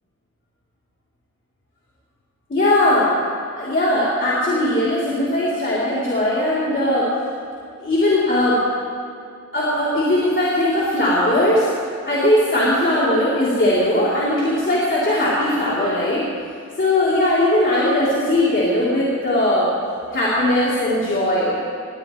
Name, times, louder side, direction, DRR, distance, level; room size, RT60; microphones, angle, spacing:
voice 1, 2.5-3.1 3.6-7.1 7.8-8.6 9.5-11.7 12.1-16.2 16.8-19.7 20.1-21.5, left 1 dB, 40° left, -9 dB, 3.4 m, -19 dB
20.5 x 18.0 x 3.3 m, 2.4 s
wide cardioid pair, 110°, 30 cm